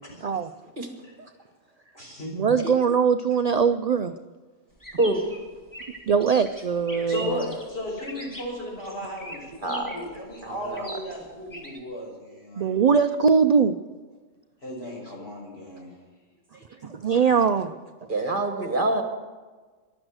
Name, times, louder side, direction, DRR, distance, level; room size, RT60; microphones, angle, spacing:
voice 1, 0.0-0.4 1.0-1.1 1.9-2.3 7.1-12.7 14.6-15.9, left 1 dB, 50° left, -3 dB, 6.0 m, -35 dB
voice 2, 2.3-4.1 6.1-7.2 12.6-13.7 16.8-17.7, right 6 dB, 70° right, 9 dB, 0.3 m, -21 dB
sound 1, 4.8-11.8, right 1 dB, 15° left, 2.4 m, -42 dB
voice 3, 4.9-5.2 9.6-9.9 10.4-10.9 18.1-19.0, right 2 dB, 45° right, 5 dB, 1.4 m, -26 dB
15.0 x 11.5 x 6.4 m, 1.4 s
omnidirectional pair, 1.3 m